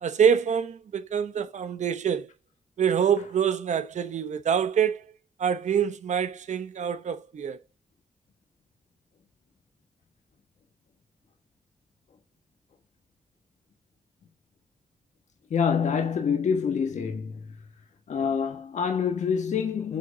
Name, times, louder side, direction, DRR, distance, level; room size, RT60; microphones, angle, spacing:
voice 1, 0.0-2.3 2.8-5.0 5.4-7.6, right 7 dB, 85° right, 1.0 m, -25 dB
voice 2, 15.5-17.5 18.1-20.0, left 6 dB, 90° left, 1.4 m, -26 dB
9.1 x 3.9 x 4.9 m
cardioid pair, 80°, 12 cm